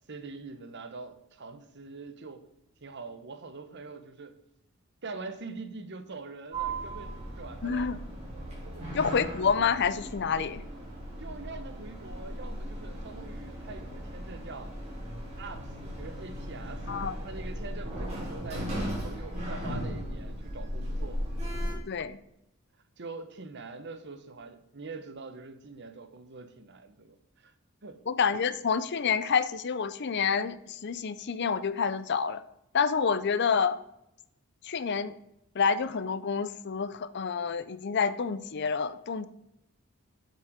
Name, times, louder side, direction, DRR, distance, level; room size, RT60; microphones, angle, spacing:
voice 1, 0.1-2.5 2.8-4.4 5.0-8.0 8.6-8.9 11.2-14.7 15.4-21.3 23.0-27.5 27.8-28.0, right 3 dB, 55° right, 1.0 m, -44 dB
Sliding door, 6.5-21.7, equal, 30° right, 4.1 m, -37 dB
voice 2, 7.6-8.0 8.9-10.6 16.9-17.1 21.9-22.2 28.1-32.4 32.7-33.8 34.6-35.1 35.6-39.3, left 6 dB, 55° left, 0.5 m, -28 dB
7.7 x 7.6 x 5.0 m
head